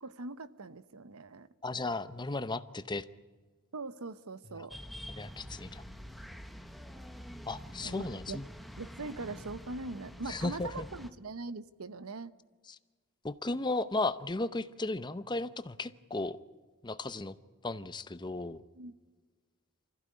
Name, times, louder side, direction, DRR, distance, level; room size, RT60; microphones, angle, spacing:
voice 1, 0.0-1.5 3.7-4.8 7.8-8.4 8.8-12.3 18.5-18.9, right 3 dB, 70° right, 15 dB, 0.9 m, -42 dB
voice 2, 1.6-3.0 4.6-4.7 5.2-5.8 7.5-8.5 10.3-10.9 13.2-16.4 16.8-17.3 17.6-18.6, left 2 dB, 20° left, 13 dB, 0.7 m, -35 dB
sound 1, 4.7-11.1, equal, ahead, 1.1 m, -47 dB
25.5 x 15.5 x 9.6 m, 1.4 s
head